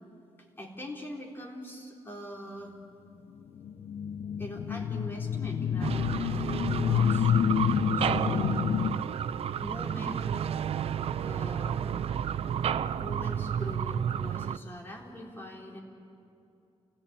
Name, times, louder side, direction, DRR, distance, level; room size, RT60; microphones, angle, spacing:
voice 1, 0.6-2.7 4.4-7.3 7.9-8.6 9.6-10.3 11.2-12.1 13.0-15.8, equal, 20° left, -1 dB, 4.0 m, -42 dB
sound 1, 3.6-8.9, left 8 dB, 70° left, 0.6 m, -28 dB
sound 2, 5.8-14.6, right 8 dB, 65° right, 0.6 m, -31 dB
29.5 x 17.0 x 8.9 m, 2.7 s
wide cardioid pair, 135°, 11 cm